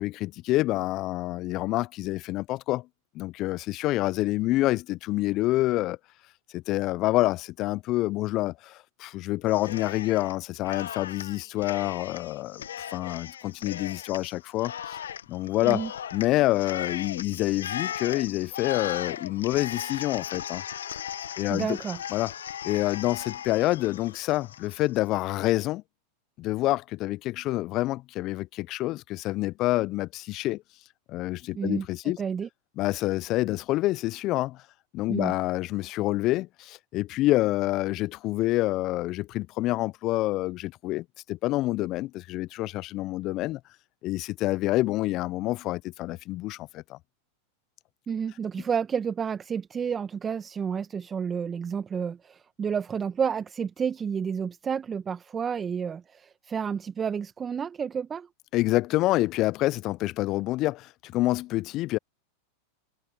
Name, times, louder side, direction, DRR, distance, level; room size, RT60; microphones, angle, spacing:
voice 1, 0.0-2.9 3.1-6.0 6.5-12.6 12.9-15.0 15.3-15.8 16.1-20.6 21.4-21.8 22.1-22.3 22.6-25.8 26.4-30.6 31.1-32.2 32.8-34.6 34.9-43.6 44.0-47.0 58.5-62.0, left 17 dB, 45° left, 0.4 m, -27 dB
Cheering, 9.5-10.3 10.6-25.0, left 9 dB, 80° left, 0.9 m, -37 dB
voice 2, 21.5-22.0 31.5-31.9 32.2-32.5 35.1-35.3 48.1-58.3, right 7 dB, 25° right, 1.2 m, -30 dB
hypercardioid pair, 95°, 0 cm